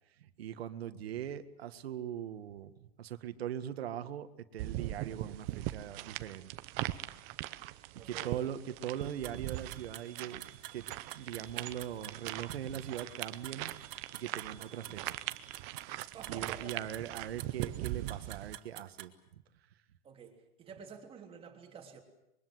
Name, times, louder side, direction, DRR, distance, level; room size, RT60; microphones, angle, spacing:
voice 1, 0.2-2.7 3.0-6.5 8.0-10.9 11.1-13.7 14.1-15.2 16.0-19.4, right 10 dB, 85° right, 10 dB, 1.8 m, -41 dB
sound 1, 4.6-18.5, right 17 dB, 35° right, 0.9 m, -41 dB
voice 2, 7.9-8.5 16.1-17.1 20.0-22.0, right 6 dB, 20° right, 2 dB, 3.3 m, -50 dB
sound 2, 8.9-15.7, right 8 dB, ahead, 5.0 m, -60 dB
sound 3, 9.0-19.1, right 16 dB, 55° right, 2.6 m, -47 dB
25.5 x 23.0 x 7.8 m, 0.86 s
supercardioid pair, 160°, 30 cm